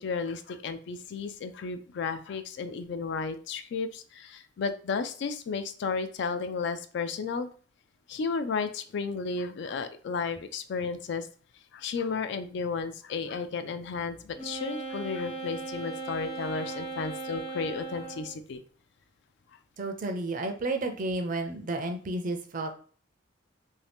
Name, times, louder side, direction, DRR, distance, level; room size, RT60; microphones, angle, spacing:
voice 1, 0.0-7.5 8.1-11.3 11.7-18.6 19.5-19.6, left 5 dB, 65° left, 10 dB, 0.3 m, -33 dB
Wind instrument woodwind instrument, 14.4-18.4, right 3 dB, 35° left, 0.7 m, -38 dB
voice 2, 19.8-22.7, right 2 dB, 45° right, 6 dB, 0.5 m, -32 dB
2.7 x 2.7 x 3.4 m, 0.43 s
head